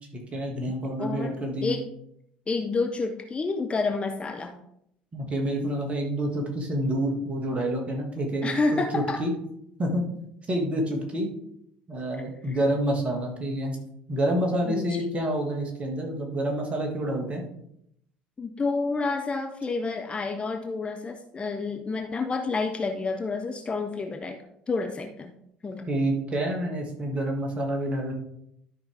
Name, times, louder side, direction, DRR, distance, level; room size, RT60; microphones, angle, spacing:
voice 1, 0.1-1.8 5.1-9.3 9.8-10.0 10.5-11.3 11.9-13.8 14.1-17.4 25.9-28.1, right 1 dB, 25° right, 1 dB, 2.3 m, -28 dB
voice 2, 1.0-1.4 1.6-1.8 2.5-4.6 8.4-9.2 12.5-12.6 14.6-15.1 18.4-24.4 24.7-25.3 25.6-25.9, left 3 dB, 25° left, 5 dB, 0.8 m, -29 dB
12.5 x 5.1 x 3.7 m, 0.75 s
figure-of-eight pair, 65°, 5 cm